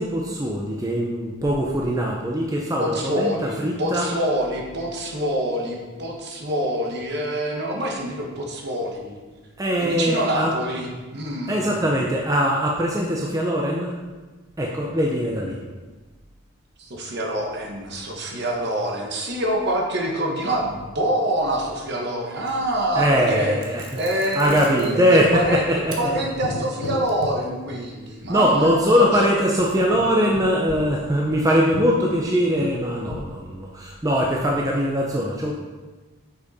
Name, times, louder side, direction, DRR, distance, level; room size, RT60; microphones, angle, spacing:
voice 1, 0.0-4.1 9.6-10.5 11.5-13.9 14.6-15.6 23.0-24.0 24.3-25.9 28.3-35.5, equal, 15° right, -2 dB, 0.5 m, -21 dB
voice 2, 2.8-9.2 9.8-11.8 16.8-23.6 23.9-25.6 26.0-29.0, right 1 dB, 50° right, 0 dB, 1.1 m, -26 dB
sound 1, 22.5-22.9 23.6-25.4 25.9-26.0 26.5-27.5, right 5 dB, 80° right, 1.2 m, -43 dB
sound 2, 24.5-24.7 25.0-25.8 26.1-27.4 27.7-27.8 28.2-28.3 28.7-28.8 29.1-31.5 31.7-33.3, left 3 dB, 85° left, 0.6 m, -35 dB
6.5 x 5.5 x 4.1 m, 1.3 s
head